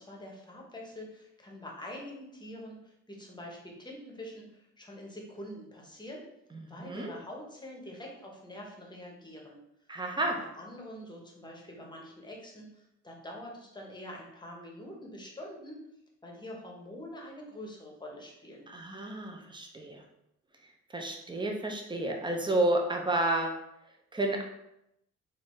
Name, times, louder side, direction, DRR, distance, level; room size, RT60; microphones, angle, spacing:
voice 1, 0.0-6.2 6.6-9.6 10.1-15.8 16.2-18.7, left 1 dB, 15° left, -1 dB, 1.0 m, -45 dB
voice 2, 6.8-7.1 9.9-10.4 18.7-20.0 20.9-23.5 24.1-24.4, right 1 dB, 15° right, 2 dB, 0.7 m, -30 dB
4.0 x 2.7 x 3.2 m, 0.83 s
cardioid pair, 90°, 30 cm